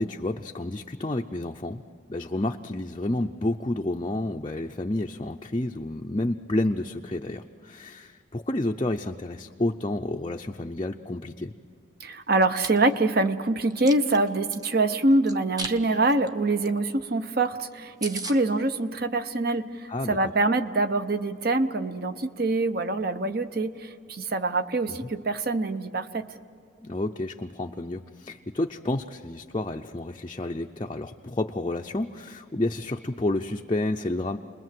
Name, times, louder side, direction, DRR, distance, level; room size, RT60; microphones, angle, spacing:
voice 1, 0.0-1.8 2.1-11.5 19.9-20.2 24.9-25.0 26.8-34.4, left 1 dB, 25° left, 2 dB, 0.5 m, -30 dB
voice 2, 12.0-26.3, right 2 dB, 50° right, 10 dB, 0.9 m, -25 dB
Chewing mastication, 12.3-12.7 13.2-14.7 15.3-15.8 16.1-16.3 16.6-16.7 17.0-17.1 17.4-17.5 17.7-17.8 18.0-18.4, right 2 dB, 20° right, 1.0 m, -35 dB
29.5 x 21.0 x 7.7 m, 2.4 s
head